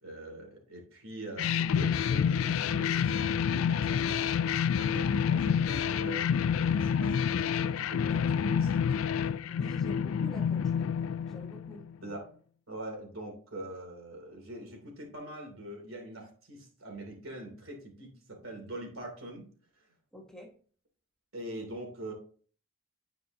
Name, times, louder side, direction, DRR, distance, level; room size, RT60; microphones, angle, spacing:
voice 1, 0.0-4.3 4.7-8.9 12.0-12.3 12.7-19.5 19.8-19.9 21.3-22.1, right 1 dB, 85° right, 2 dB, 2.8 m, -43 dB
sound 1, 1.4-11.9, left 7 dB, 85° left, 0.3 m, -28 dB
voice 2, 9.5-10.9 11.3-11.8 20.1-20.5, left 1 dB, 5° left, 0 dB, 1.2 m, -47 dB
10.5 x 5.0 x 2.9 m, 0.43 s
head